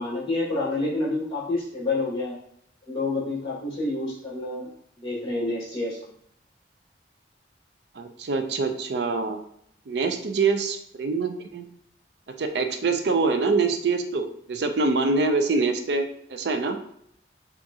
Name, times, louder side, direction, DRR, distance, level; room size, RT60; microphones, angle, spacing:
voice 1, 0.0-2.4 2.9-4.7 5.0-6.1, left 2 dB, 25° left, -6 dB, 1.9 m, -28 dB
voice 2, 8.0-9.4 9.9-11.7 12.4-16.8, right 4 dB, 70° right, 6 dB, 0.5 m, -25 dB
7.0 x 2.5 x 2.8 m, 0.70 s
head